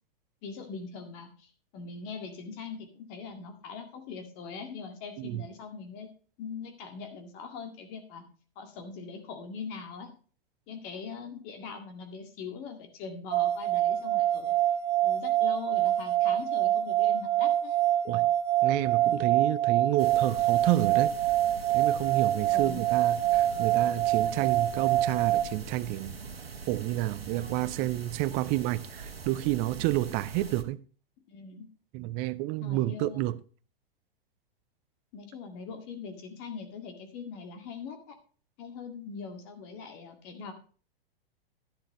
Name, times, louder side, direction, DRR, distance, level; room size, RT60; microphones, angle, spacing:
voice 1, 0.4-6.1 6.4-8.2 8.6-10.1 10.7-14.6 15.0-17.8 22.5-22.8 31.3-31.7 32.6-33.3 35.1-38.2 38.6-40.5, left 5 dB, 40° left, 2.1 m, -42 dB
sound 1, 13.3-25.4, right 12 dB, 45° right, 1.0 m, -25 dB
voice 2, 18.6-21.1 21.7-26.2 26.7-30.8 31.9-33.4, right 17 dB, 30° right, 0.5 m, -30 dB
sound 2, 20.0-30.6, right 4 dB, 85° right, 1.3 m, -43 dB
11.5 x 11.0 x 3.1 m
figure-of-eight pair, 105°, 29 cm